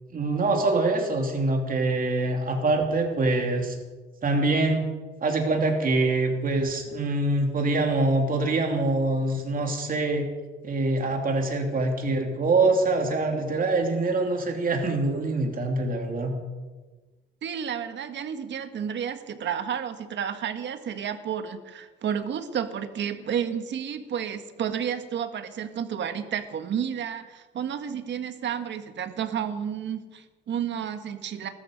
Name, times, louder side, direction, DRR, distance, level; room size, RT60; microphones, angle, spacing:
voice 1, 0.1-3.8 4.2-4.9 5.2-10.3 10.6-16.3, right 2 dB, 45° right, 2 dB, 2.8 m, -24 dB
voice 2, 17.4-31.5, right 8 dB, 65° right, 8 dB, 1.6 m, -31 dB
20.0 x 13.0 x 5.2 m, 1.3 s
cardioid pair, 90°, 20 cm